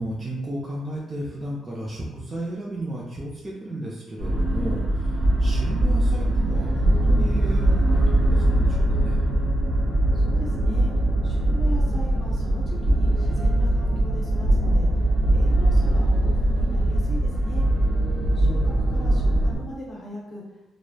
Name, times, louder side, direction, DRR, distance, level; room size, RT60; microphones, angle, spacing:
voice 1, 0.0-9.2 18.4-19.0, right 1 dB, 20° right, -5 dB, 0.5 m, -34 dB
sound 1, 4.2-19.6, right 1 dB, 65° right, 0.9 m, -21 dB
voice 2, 10.2-10.9 11.2-14.9 15.3-17.7 18.3-20.4, left 1 dB, 45° left, -4 dB, 0.7 m, -39 dB
3.0 x 2.0 x 2.2 m, 0.96 s
cardioid pair, 90°, 0 cm